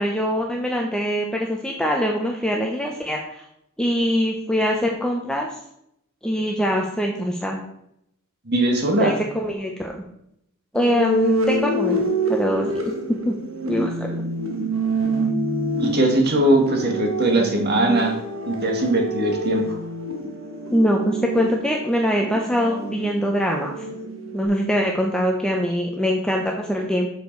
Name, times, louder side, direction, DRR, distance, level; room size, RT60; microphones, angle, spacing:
voice 1, 0.0-3.4 3.8-5.5 6.2-7.6 9.0-10.0 10.7-12.0 12.3-13.4 13.6-14.1 20.7-23.7 24.3-27.1, equal, 5° left, 0 dB, 0.8 m, -23 dB
voice 2, 8.5-9.1 15.8-18.2 18.5-19.8, right 1 dB, 50° right, 2 dB, 1.8 m, -20 dB
sound 1, 10.7-24.5, right 2 dB, 75° right, 1.7 m, -27 dB
7.8 x 6.7 x 4.6 m, 0.75 s
head